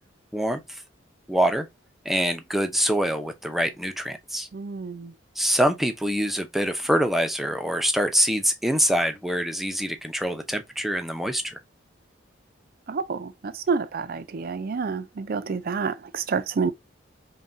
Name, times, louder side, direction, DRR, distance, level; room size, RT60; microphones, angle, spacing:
voice 1, 1.3-1.7 2.1-4.5 5.4-11.6, equal, ahead, 0.5 m, -25 dB
voice 2, 4.5-5.1 12.9-16.7, right 5 dB, 50° right, 0.4 m, -28 dB
5.4 x 2.3 x 2.6 m
head